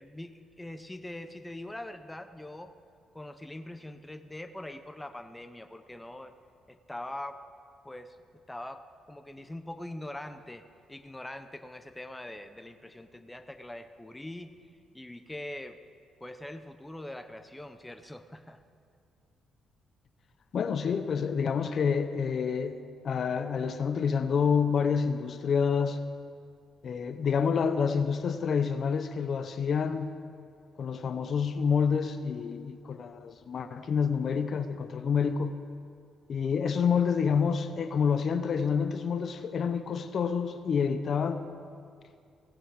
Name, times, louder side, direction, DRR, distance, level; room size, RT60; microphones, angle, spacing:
voice 1, 0.0-2.8 3.1-6.3 6.7-7.4 7.8-8.2 8.5-14.6 14.9-15.8 16.2-18.6, left 1 dB, 10° left, 9 dB, 0.6 m, -43 dB
voice 2, 20.5-22.8 23.0-26.0 26.8-30.2 30.8-35.6 36.3-41.4, left 6 dB, 55° left, 10 dB, 0.7 m, -28 dB
16.5 x 10.0 x 4.7 m, 2.3 s
cardioid pair, 90°, 0 cm